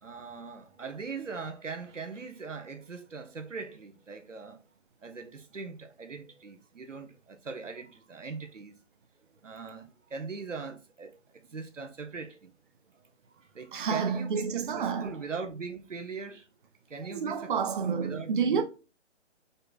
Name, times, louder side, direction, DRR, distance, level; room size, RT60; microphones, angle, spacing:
voice 1, 0.0-4.6 5.0-8.7 9.4-12.5 12.9-16.5 16.9-17.5 17.8-18.6, right 4 dB, 90° right, 1.2 m, -41 dB
voice 2, 13.7-15.1 17.1-18.6, right 6 dB, 45° right, 0.7 m, -29 dB
5.4 x 4.1 x 2.4 m
figure-of-eight pair, 150°, 36 cm